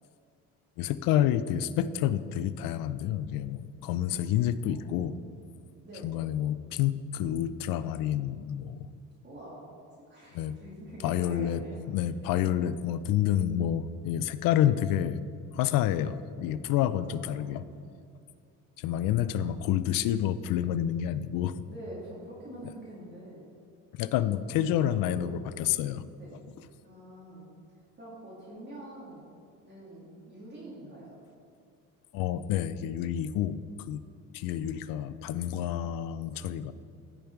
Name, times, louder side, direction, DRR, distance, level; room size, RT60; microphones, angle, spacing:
voice 1, 0.8-5.2 6.0-8.9 10.3-10.5 11.0-11.6 11.9-15.2 15.5-17.6 18.8-21.6 23.9-26.0 32.1-33.6 33.9-34.0 34.3-36.7, left 11 dB, 80° left, 14 dB, 0.5 m, -28 dB
voice 2, 4.6-5.3 5.8-6.2 9.2-12.1 12.4-12.5 16.9-17.8 19.4-19.5 21.7-23.5 24.7-25.3 26.1-26.4 26.8-27.5 27.7-29.2 29.6-31.2 34.3-34.8, right 1 dB, 30° right, -6 dB, 2.3 m, -46 dB
15.0 x 5.1 x 4.6 m, 2.3 s
cardioid pair, 130°, 34 cm